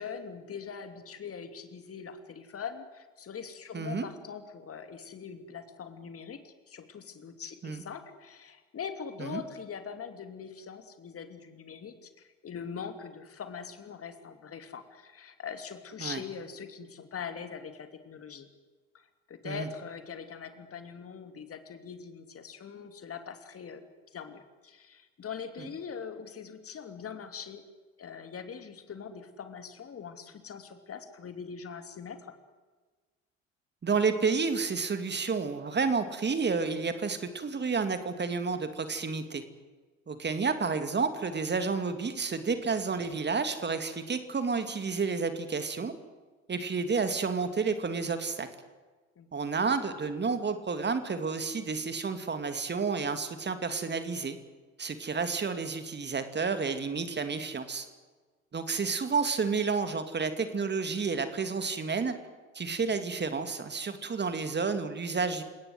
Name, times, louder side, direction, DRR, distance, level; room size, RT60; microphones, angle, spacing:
voice 1, 0.0-18.5 19.3-23.8 24.1-27.6 28.0-32.2 49.2-49.6 62.7-63.1, left 6 dB, 35° left, 8 dB, 2.9 m, -42 dB
voice 2, 3.7-4.1 7.6-7.8 9.2-9.4 16.0-16.2 19.4-19.7 25.6-25.7 33.8-39.4 40.1-45.9 46.5-48.5 49.3-54.4 54.8-57.9 58.5-62.1 62.5-65.4, right 5 dB, 30° right, 9 dB, 2.7 m, -30 dB
29.0 x 18.5 x 8.0 m, 1.3 s
figure-of-eight pair, 60°, 38 cm